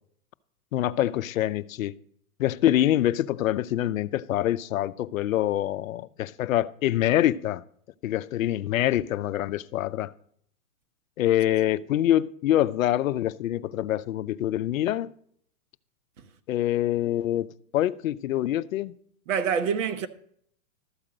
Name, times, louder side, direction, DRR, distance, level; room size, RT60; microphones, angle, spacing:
voice 1, 0.7-2.0 2.4-7.6 8.0-10.1 11.2-15.1 16.5-19.0, left 13 dB, 65° left, 0.6 m, -25 dB
voice 2, 19.3-20.1, right 7 dB, 60° right, 1.1 m, -26 dB
13.0 x 5.0 x 7.7 m
hypercardioid pair, 150°, 44 cm